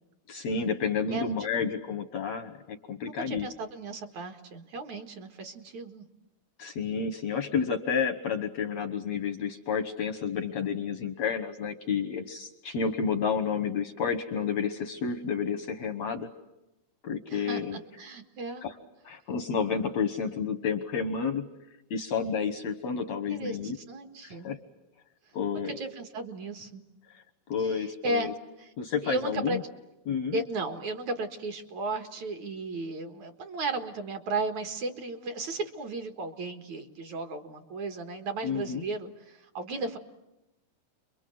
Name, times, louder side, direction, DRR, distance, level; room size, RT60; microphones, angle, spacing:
voice 1, 0.3-3.5 6.6-16.3 17.0-17.8 18.6-18.7 19.0-21.5 21.9-23.8 24.2-24.6 25.3-25.8 27.5-28.3 28.8-29.6 30.1-30.4 38.4-38.8, left 6 dB, 70° left, 9 dB, 1.7 m, -30 dB
voice 2, 3.3-6.0 17.3-18.6 23.3-24.5 25.5-26.8 27.6-28.7 29.0-29.6 30.3-40.0, right 2 dB, 55° right, 6 dB, 2.5 m, -35 dB
29.5 x 23.5 x 7.9 m, 0.95 s
omnidirectional pair, 4.6 m